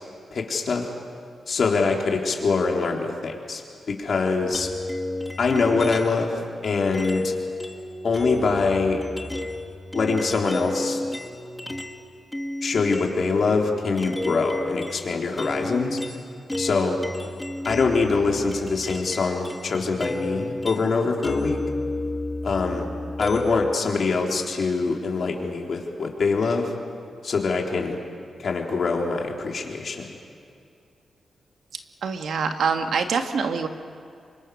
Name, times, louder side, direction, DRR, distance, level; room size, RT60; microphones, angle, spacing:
voice 1, 0.3-0.9 1.5-3.6 3.9-4.7 5.4-7.3 8.0-9.0 9.9-11.0 12.6-16.0 16.6-17.0 17.7-21.6 22.4-22.9 23.2-26.7 27.2-28.0 28.4-30.2, left 4 dB, 60° left, 0 dB, 3.6 m, -24 dB
sound 1, 4.5-6.3 6.9-12.0 12.3-23.7, left 1 dB, 10° left, 1.9 m, -32 dB
voice 2, 32.0-33.7, right 5 dB, 80° right, 5 dB, 1.7 m, -25 dB
28.0 x 24.5 x 6.5 m, 2.4 s
cardioid pair, 95°, 0 cm